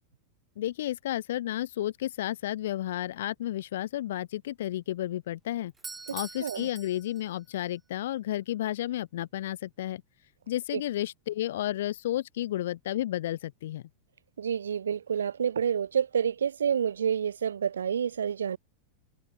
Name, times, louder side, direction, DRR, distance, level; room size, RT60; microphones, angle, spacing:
voice 1, 0.6-5.7 6.1-10.0 10.5-13.8, left 13 dB, 55° left, 0.4 m, -32 dB
Doorbell, 5.7-7.6, right 3 dB, 10° right, 1.7 m, -44 dB
voice 2, 6.1-6.7 10.7-10.8 14.4-18.6, right 8 dB, 70° right, 0.4 m, -29 dB
figure-of-eight pair, 90°, 0 cm